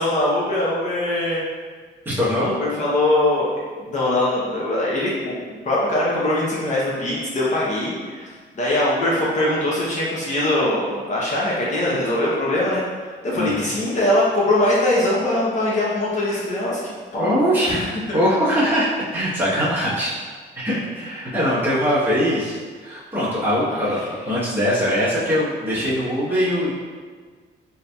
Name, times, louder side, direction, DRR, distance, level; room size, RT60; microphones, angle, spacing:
voice 1, 0.0-1.4 2.4-3.5 3.8-8.3 8.5-18.2 21.0-21.3 23.7-24.1, left 1 dB, 40° left, -6 dB, 0.6 m, -22 dB
voice 2, 2.0-2.5 13.3-13.7 17.2-17.8 18.1-20.1 20.5-22.6 22.8-24.0 24.3-26.7, equal, 10° right, -10 dB, 0.9 m, -21 dB
3.9 x 2.6 x 2.2 m, 1.5 s
cardioid pair, 145°, 19 cm